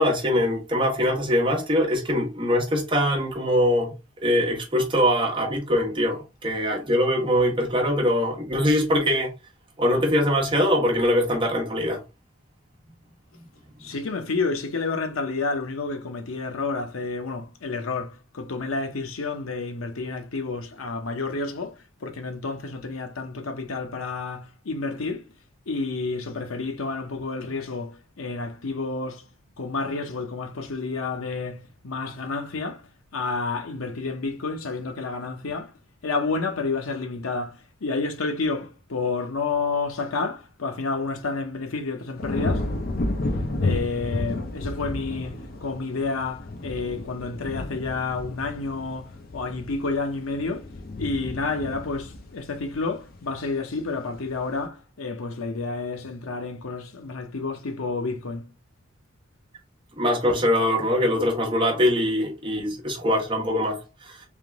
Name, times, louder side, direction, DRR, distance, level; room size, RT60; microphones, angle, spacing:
voice 1, 0.0-9.4 9.8-12.0 60.0-63.8 64.0-64.2, equal, 25° right, 1.3 m, -22 dB
voice 2, 13.8-25.3 25.7-29.3 29.6-35.7 36.0-42.7 43.6-50.7 51.0-58.5, left 3 dB, 85° left, 0.8 m, -30 dB
sound 1, 42.2-53.5 53.9-54.4, left 2 dB, 45° left, 0.6 m, -32 dB
3.6 x 2.9 x 3.5 m
head